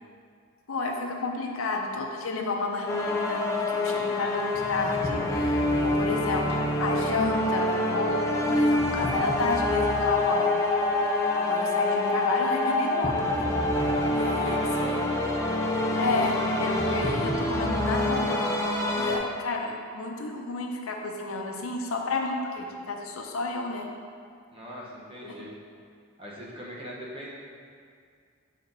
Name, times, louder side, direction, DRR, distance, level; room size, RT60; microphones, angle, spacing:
voice 1, 0.7-10.5 11.4-13.4 14.2-15.0 16.0-18.5 18.9-23.9 25.2-25.4, left 3 dB, 85° left, 2 dB, 0.7 m, -31 dB
sound 1, 2.9-19.2, left 2 dB, 15° left, 0.5 m, -26 dB
voice 2, 3.8-4.4 13.9-15.1 17.2-17.6 24.5-25.5 26.2-27.3, equal, 25° right, -5 dB, 1.1 m, -42 dB
7.5 x 4.2 x 4.0 m, 2.2 s
head